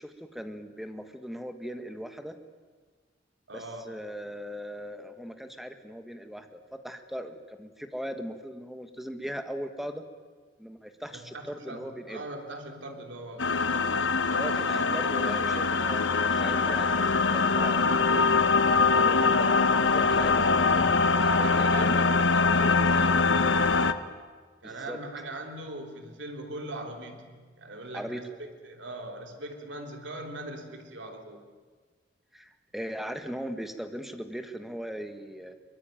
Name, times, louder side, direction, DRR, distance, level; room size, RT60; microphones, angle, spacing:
voice 1, 0.0-2.4 3.5-10.0 10.6-12.2 14.3-18.3 18.9-20.5 20.7-22.1 24.6-25.0 27.9-28.2 32.3-35.5, equal, ahead, 7 dB, 1.5 m, -39 dB
voice 2, 3.5-3.9 11.1-13.5 21.2-23.4 24.6-28.2 28.6-31.4, right 2 dB, 70° right, 3 dB, 3.3 m, -40 dB
sound 1, 13.4-23.9, left 4 dB, 80° left, 1.1 m, -23 dB
23.0 x 22.0 x 9.2 m, 1.5 s
head